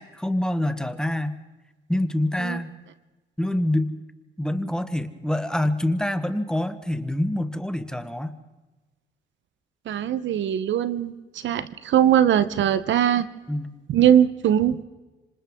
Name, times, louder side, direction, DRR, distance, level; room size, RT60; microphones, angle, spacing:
voice 1, 0.0-1.4 1.9-2.7 3.4-3.9 4.4-8.4 13.5-13.7, left 1 dB, 5° left, 10 dB, 1.3 m, -26 dB
voice 2, 9.9-11.1 11.4-13.3 13.9-14.9, right 10 dB, 70° right, 14 dB, 1.0 m, -20 dB
26.5 x 26.0 x 3.8 m, 1.2 s
cardioid pair, 90°, 20 cm